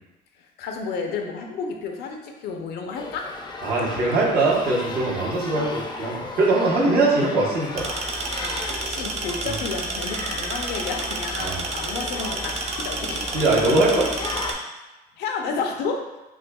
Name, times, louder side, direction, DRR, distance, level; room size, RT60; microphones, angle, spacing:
voice 1, 0.4-3.3 8.4-13.6 15.2-16.0, left 4 dB, 75° left, 3 dB, 0.6 m, -31 dB
sound 1, 2.9-14.5, left 3 dB, 25° left, 0.4 m, -35 dB
voice 2, 3.6-7.9 9.4-9.5 11.4-11.6 13.3-14.1, right 2 dB, 65° right, -4 dB, 1.1 m, -21 dB
sound 2, 7.8-14.5, right 2 dB, 40° right, 0.6 m, -30 dB
6.2 x 2.3 x 2.3 m, 1.1 s
cardioid pair, 110°, 17 cm